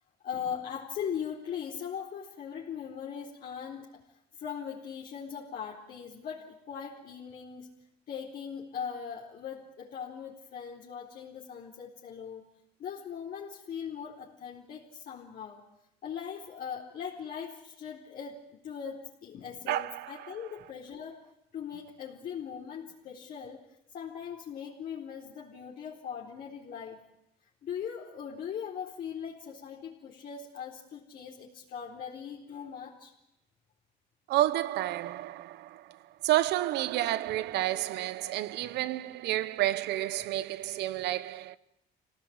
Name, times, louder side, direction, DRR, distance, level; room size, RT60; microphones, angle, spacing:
voice 1, 0.2-4.0 4.3-7.7 8.1-12.4 12.8-15.6 16.0-21.2 21.5-23.6 23.9-27.0 27.6-33.1 38.6-38.7, left 7 dB, 60° left, 4.2 m, -40 dB
voice 2, 19.7-20.4 34.3-41.6, right 14 dB, 80° right, 1.1 m, -30 dB
26.0 x 18.0 x 8.8 m
cardioid pair, 110°, 17 cm